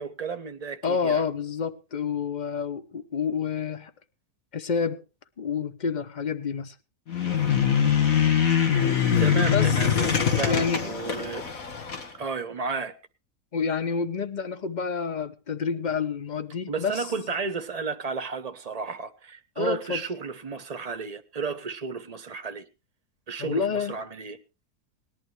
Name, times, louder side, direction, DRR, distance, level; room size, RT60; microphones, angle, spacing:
voice 1, 0.0-1.2 9.1-11.4 12.1-12.9 16.7-22.7 23.3-24.4, right 5 dB, 30° right, 0.9 m, -33 dB
voice 2, 0.8-3.9 4.5-5.0 5.4-6.7 9.4-9.8 10.4-10.9 13.5-17.1 19.6-20.0 23.4-24.0, left 6 dB, 40° left, 0.7 m, -28 dB
sound 1, 7.1-12.1, left 8 dB, 60° left, 2.2 m, -23 dB
19.5 x 11.5 x 3.2 m
omnidirectional pair, 1.7 m